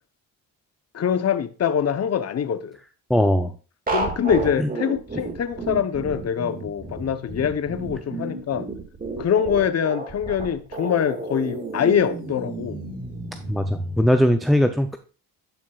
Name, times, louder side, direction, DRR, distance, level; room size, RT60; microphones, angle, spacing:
voice 1, 0.9-2.8 3.9-8.6 9.2-12.8, left 8 dB, 35° left, 0.9 m, -24 dB
voice 2, 3.1-3.5 4.6-4.7 13.5-15.0, equal, ahead, 0.5 m, -20 dB
sound 1, 3.9-14.1, right 2 dB, 20° right, 2.0 m, -31 dB
11.0 x 6.0 x 2.4 m
cardioid pair, 95°, 42 cm